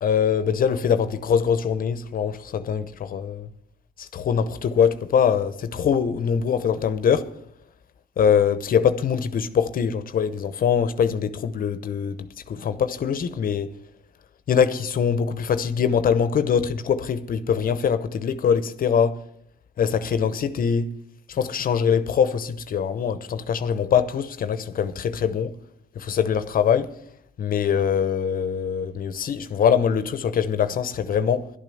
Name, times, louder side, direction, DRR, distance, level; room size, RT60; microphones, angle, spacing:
voice 1, 0.0-3.5 4.0-7.3 8.2-13.7 14.5-19.2 19.8-20.9 21.3-25.5 26.0-26.9 27.4-31.5, left 7 dB, 50° left, 0.8 m, -23 dB
11.5 x 9.0 x 7.8 m
cardioid pair, 80°, 18 cm